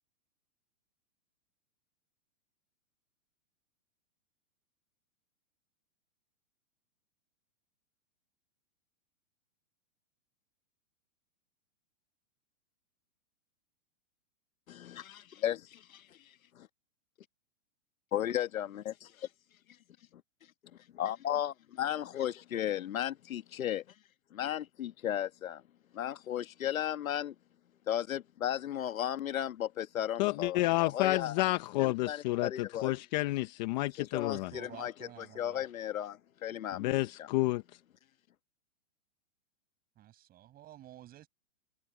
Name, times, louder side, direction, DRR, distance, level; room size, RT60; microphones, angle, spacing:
voice 1, 14.7-16.1 16.5-16.7 18.1-19.3 20.9-23.8 24.3-25.6 25.9-27.3 27.9-31.4 31.8-32.9 34.0-37.3, left 11 dB, 90° left, 1.5 m, -35 dB
voice 2, 30.2-34.5 36.7-37.6, left 19 dB, 35° left, 1.0 m, -30 dB
voice 3, 34.2-35.6 40.0-41.3, right 13 dB, 20° right, 7.6 m, -51 dB
hypercardioid pair, 160°, 40 cm